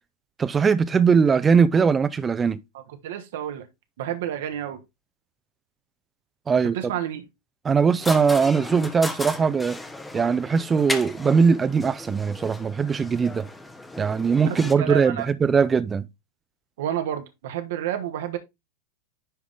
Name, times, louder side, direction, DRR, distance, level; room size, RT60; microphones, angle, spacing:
voice 1, 0.4-2.6 6.5-6.8 7.6-9.8 10.1-13.5 14.0-16.1, right 5 dB, 20° right, 0.6 m, -20 dB
voice 2, 2.7-3.7 4.0-4.8 6.7-7.2 14.4-15.3 16.8-18.4, right 11 dB, 55° right, 1.0 m, -30 dB
sound 1, 8.0-14.7, left 2 dB, 10° left, 0.8 m, -35 dB
10.0 x 3.6 x 3.5 m
figure-of-eight pair, 90°, 0 cm